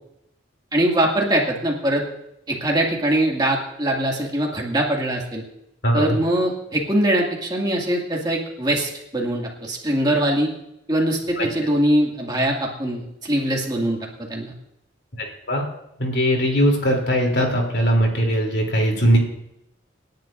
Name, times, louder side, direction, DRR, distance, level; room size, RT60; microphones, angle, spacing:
voice 1, 0.7-2.0 2.5-5.4 5.9-10.5 10.9-14.0 14.3-14.5, right 1 dB, 20° right, -1 dB, 2.1 m, -22 dB
voice 2, 5.8-6.2 11.4-11.5 15.2-15.6 16.0-19.2, equal, 60° left, 1 dB, 3.1 m, -20 dB
27.5 x 10.5 x 2.6 m, 0.80 s
head